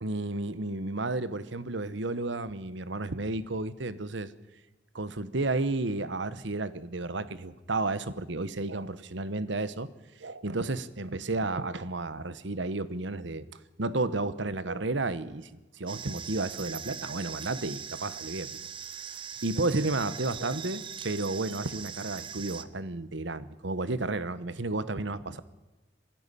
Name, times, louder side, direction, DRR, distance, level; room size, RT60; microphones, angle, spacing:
voice 1, 0.0-4.3 4.9-9.9 10.2-13.5 13.8-18.6 19.4-25.4, right 2 dB, 70° right, 15 dB, 1.1 m, -32 dB
sound 1, 15.9-22.7, right 8 dB, 25° right, 0.7 m, -41 dB
19.0 x 15.5 x 10.0 m, 1.1 s
head